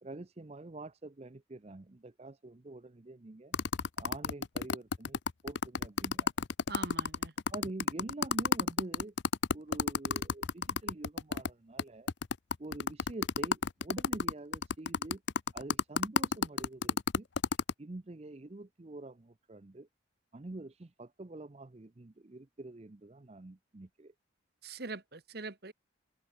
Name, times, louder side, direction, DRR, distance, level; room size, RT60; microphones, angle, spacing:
voice 1, 0.0-3.6 4.0-6.3 7.5-9.1 9.5-12.1 12.6-15.2 15.5-17.3 17.8-19.9 20.3-24.1, right 2 dB, 35° right, 0.6 m, -46 dB
sound 1, 3.5-11.5 11.8-11.9 12.1-17.7, left 5 dB, 65° left, 0.6 m, -31 dB
voice 2, 6.7-7.3 24.6-25.7, right 3 dB, 55° right, 1.4 m, -43 dB
head